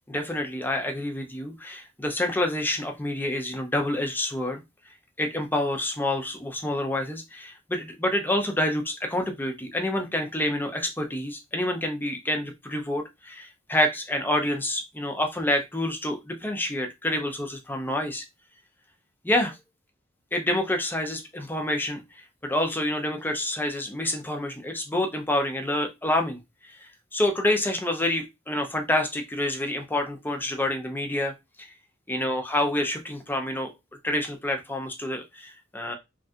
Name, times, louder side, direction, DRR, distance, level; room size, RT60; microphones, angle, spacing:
voice 1, 0.1-4.6 5.2-18.2 19.2-19.6 20.3-31.7 32.1-33.7 34.0-35.9, left 1 dB, 10° left, 4 dB, 0.5 m, -28 dB
3.2 x 2.6 x 2.3 m, 0.21 s
head